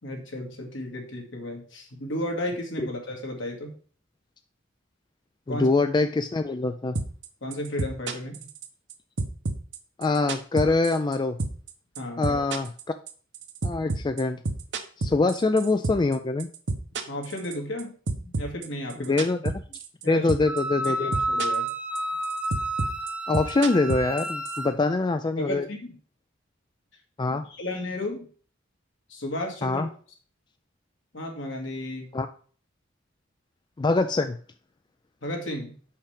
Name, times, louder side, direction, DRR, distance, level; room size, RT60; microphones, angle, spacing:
voice 1, 0.0-3.7 5.5-5.7 7.4-8.4 12.0-12.4 17.1-17.9 18.2-19.2 20.0-20.3 21.0-21.7 25.4-25.9 27.3-28.2 29.1-29.8 31.1-32.1 35.2-35.8, left 1 dB, 70° left, 1 dB, 2.1 m, -33 dB
voice 2, 5.5-7.0 10.0-11.4 12.2-12.7 13.6-14.4 15.0-16.5 19.1-19.5 20.1-21.2 23.3-25.6 27.2-27.5 29.6-29.9 32.1-32.3 33.8-34.4, left 3 dB, 25° left, 8 dB, 0.4 m, -24 dB
sound 1, 6.9-7.3 7.5-8.9 9.2-11.1 11.4-11.7 11.9-16.1 16.4-17.8 18.1-20.0 20.3-20.6 20.8-21.7 21.9-24.6, right 3 dB, 65° right, 1.0 m, -29 dB
Wind instrument woodwind instrument, 20.5-24.7, right 1 dB, 5° right, 0.7 m, -30 dB
5.8 x 5.7 x 5.1 m, 0.42 s
head